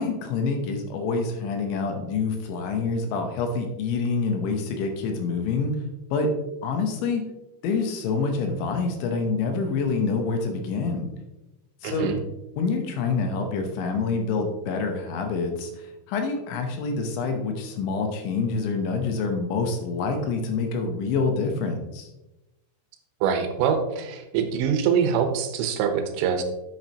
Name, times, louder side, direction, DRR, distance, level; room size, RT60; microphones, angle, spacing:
voice 1, 0.0-5.8 6.1-6.3 6.6-7.2 7.6-11.1 11.8-12.1 12.6-22.1, left 4 dB, 75° left, 4 dB, 3.1 m, -26 dB
voice 2, 11.8-12.2 23.2-26.4, right 7 dB, 80° right, 6 dB, 3.5 m, -24 dB
9.3 x 8.5 x 2.9 m, 0.99 s
omnidirectional pair, 5.8 m